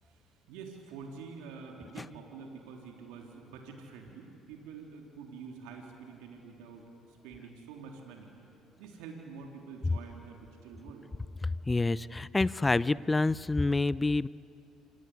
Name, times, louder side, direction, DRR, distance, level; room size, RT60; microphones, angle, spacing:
voice 1, 0.0-8.3 8.8-11.1, right 5 dB, 75° right, 1 dB, 3.5 m, -47 dB
voice 2, 11.4-14.3, left 3 dB, 20° left, 19 dB, 0.6 m, -28 dB
27.0 x 25.5 x 8.5 m, 2.9 s
hypercardioid pair, 55°, 0 cm